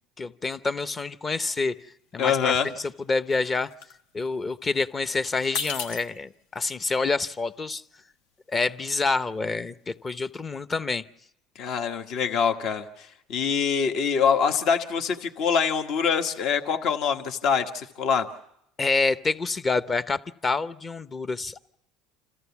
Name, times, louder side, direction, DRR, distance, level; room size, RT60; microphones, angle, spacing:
voice 1, 0.2-1.7 2.1-3.7 4.1-7.8 8.5-11.0 18.8-21.6, left 3 dB, 30° left, 0.8 m, -27 dB
sound 1, 1.4-1.6 1.9-2.5 2.8-5.0 5.4-10.4, left 6 dB, 80° left, 1.1 m, -38 dB
voice 2, 2.2-2.7 11.6-18.3, left 6 dB, 60° left, 1.3 m, -25 dB
27.5 x 14.0 x 7.1 m
supercardioid pair, 90°, 0 cm